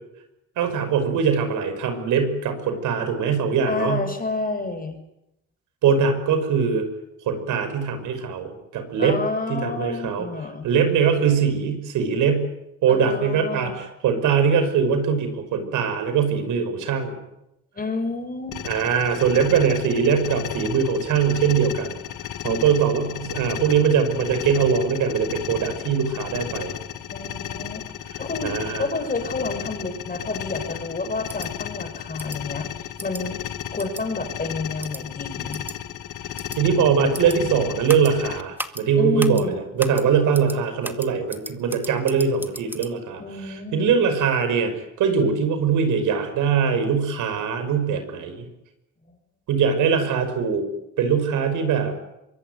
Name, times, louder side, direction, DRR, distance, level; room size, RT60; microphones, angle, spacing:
voice 1, 0.6-4.0 5.8-6.9 7.3-9.2 9.5-10.3 10.6-12.5 12.8-17.2 18.6-22.0 22.4-26.7 28.4-28.9 36.6-48.5 49.5-50.7 51.0-51.9, right 6 dB, 85° right, 9 dB, 5.6 m, -22 dB
voice 2, 3.6-5.0 9.0-10.7 12.9-13.7 17.7-18.6 22.4-22.6 27.1-27.9 28.2-33.4 33.7-35.6 39.0-39.6 43.2-43.9 49.0-49.1, left 3 dB, 30° left, 7 dB, 6.6 m, -29 dB
sound 1, 18.5-38.4, left 11 dB, 85° left, 1.9 m, -34 dB
sound 2, 31.3-31.5 32.2-32.4 33.0-33.2 33.8-34.0 34.8-35.0 35.5-35.7 36.4-36.6 37.1-37.4 37.9-38.1 38.6-38.8 39.2-39.4 39.8-40.0 40.3-40.6 40.8-42.9, right 1 dB, 5° right, 2.1 m, -35 dB
24.5 x 22.0 x 9.6 m, 0.87 s
cardioid pair, 90°, 30 cm